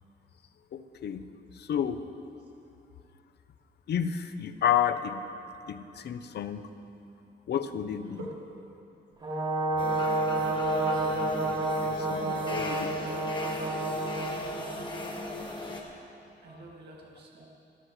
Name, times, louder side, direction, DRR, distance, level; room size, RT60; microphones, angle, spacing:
voice 1, 0.7-1.2 1.6-2.0 3.9-5.3 5.7-6.6 7.5-8.3 11.8-13.3, left 9 dB, 65° left, 11 dB, 0.7 m, -31 dB
Brass instrument, 9.2-14.4, right 2 dB, 30° right, 3.4 m, -29 dB
sound 1, 9.8-15.8, left 2 dB, 25° left, 1.5 m, -38 dB
voice 2, 14.2-15.6 16.4-17.5, right 3 dB, 65° right, -2 dB, 1.9 m, -48 dB
26.0 x 13.5 x 3.2 m, 2.8 s
wide cardioid pair, 150°, 18 cm